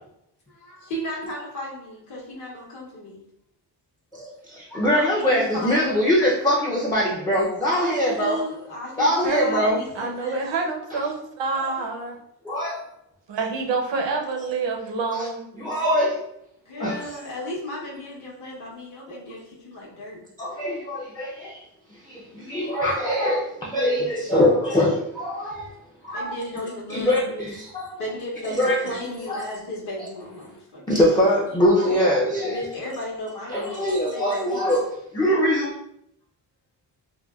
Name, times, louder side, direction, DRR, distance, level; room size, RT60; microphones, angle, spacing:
voice 1, 0.5-3.2 4.9-5.9 7.7-10.4 16.6-20.2 22.5-22.7 26.1-27.7 27.9-31.5 32.4-34.8, left 1 dB, 45° left, -5 dB, 0.8 m, -35 dB
voice 2, 4.1-8.4 9.0-9.8 12.4-12.8 15.1-15.3 15.6-16.2 16.8-17.2 20.4-21.6 22.1-25.7 26.0-26.3 26.9-28.0 28.4-28.7 29.3-29.5 30.9-32.6 33.5-34.9 35.1-35.7, equal, 10° left, -6 dB, 0.4 m, -22 dB
voice 3, 9.2-9.7 9.9-12.2 13.3-15.5, right 4 dB, 90° right, 1 dB, 0.7 m, -27 dB
3.8 x 2.2 x 2.3 m, 0.77 s
wide cardioid pair, 135°, 42 cm